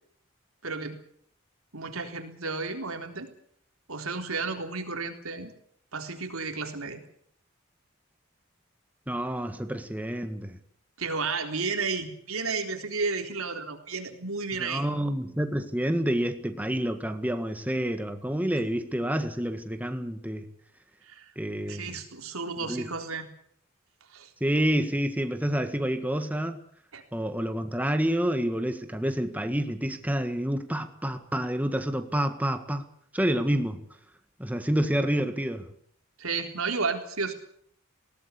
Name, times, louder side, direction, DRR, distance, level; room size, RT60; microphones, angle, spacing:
voice 1, 0.6-1.0 1.7-3.3 3.9-5.5 5.9-7.0 11.0-14.9 21.0-21.3 21.6-23.3 24.1-24.3 26.9-27.0 36.2-37.3, right 4 dB, 90° right, 5 dB, 3.8 m, -32 dB
voice 2, 9.1-10.6 14.6-20.5 21.3-22.0 22.7-22.9 24.4-26.6 27.1-32.9 33.1-33.8 34.4-35.6, equal, 5° right, 8 dB, 1.6 m, -28 dB
20.0 x 18.5 x 8.4 m, 0.64 s
head